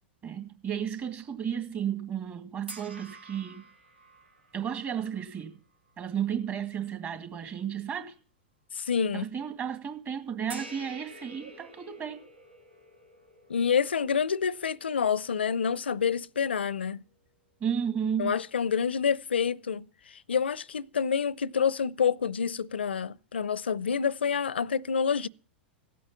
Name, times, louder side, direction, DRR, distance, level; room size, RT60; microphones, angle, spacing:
voice 1, 0.2-3.6 4.5-5.6 6.0-8.2 9.1-12.3 17.6-18.4, right 8 dB, 30° right, 2.1 m, -33 dB
sound 1, 2.7-6.2 6.7-6.9 10.5-16.9, right 1 dB, 90° right, 1.8 m, -50 dB
voice 2, 8.7-9.3 13.5-17.0 18.2-25.3, left 7 dB, 80° left, 0.5 m, -28 dB
16.0 x 8.5 x 7.3 m
hypercardioid pair, 100°, 6 cm